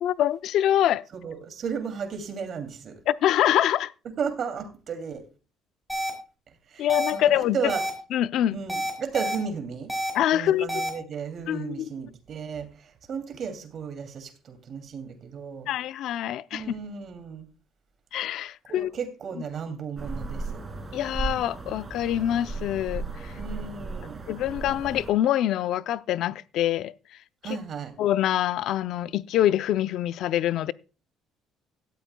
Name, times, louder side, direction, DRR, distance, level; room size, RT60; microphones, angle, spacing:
voice 1, 0.0-1.0 3.1-3.9 6.8-7.7 8.1-8.6 10.1-10.9 11.5-11.9 15.7-16.8 18.1-18.9 20.9-23.3 24.3-26.9 28.0-30.7, left 12 dB, 60° left, 0.5 m, -25 dB
voice 2, 1.1-2.9 4.2-5.2 6.7-7.8 8.5-9.9 10.3-15.7 16.5-17.5 18.7-20.6 23.4-24.2 27.4-27.9, right 6 dB, 40° right, 2.6 m, -34 dB
sound 1, 5.9-6.1 6.9-7.1 7.7-7.9 8.7-9.4 9.9-10.1 10.7-10.9, right 1 dB, ahead, 4.1 m, -28 dB
sound 2, 20.0-25.1, right 3 dB, 20° right, 2.4 m, -35 dB
17.0 x 13.0 x 2.2 m
cardioid pair, 160°, 0 cm